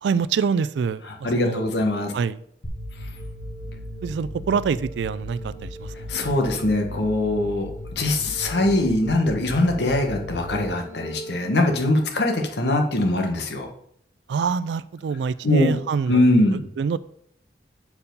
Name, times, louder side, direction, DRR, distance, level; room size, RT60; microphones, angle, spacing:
voice 1, 0.0-1.6 2.1-2.4 4.0-6.2 14.3-16.3 16.8-17.0, right 6 dB, 75° right, 16 dB, 0.3 m, -26 dB
voice 2, 1.2-2.1 6.1-13.7 15.4-15.8 16.1-16.7, left 1 dB, 70° left, 3 dB, 1.2 m, -22 dB
sound 1, 2.6-11.6, equal, 50° left, 1.2 m, -36 dB
7.0 x 4.6 x 5.2 m, 0.69 s
head